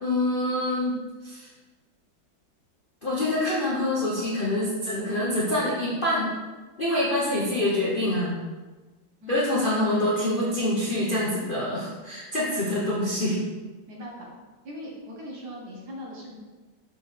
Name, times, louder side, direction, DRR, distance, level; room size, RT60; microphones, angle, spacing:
voice 1, 0.0-1.5 3.0-6.4 6.8-8.4 9.3-13.4, left 1 dB, 45° left, -7 dB, 0.7 m, -26 dB
voice 2, 13.9-14.3 14.6-16.4, equal, 60° right, -3 dB, 1.7 m, -39 dB
6.3 x 4.6 x 3.2 m, 1.3 s
omnidirectional pair, 2.1 m